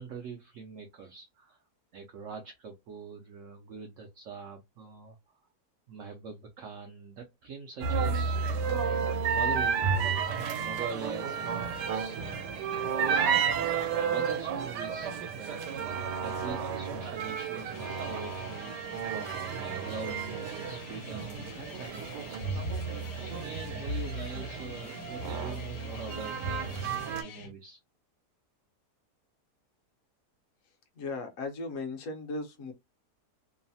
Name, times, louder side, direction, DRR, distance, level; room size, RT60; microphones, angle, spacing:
voice 1, 0.0-1.6 1.9-5.2 5.9-9.0 9.3-10.0 10.6-13.5 14.1-19.1 19.6-22.6 23.2-27.8, right 5 dB, 70° right, 0.8 m, -43 dB
sound 1, 7.8-27.2, right 6 dB, 85° right, 1.2 m, -32 dB
sound 2, 17.7-27.5, left 6 dB, 85° left, 1.2 m, -47 dB
voice 2, 31.0-32.7, left 3 dB, 60° left, 1.0 m, -37 dB
3.0 x 2.0 x 2.6 m
omnidirectional pair, 1.7 m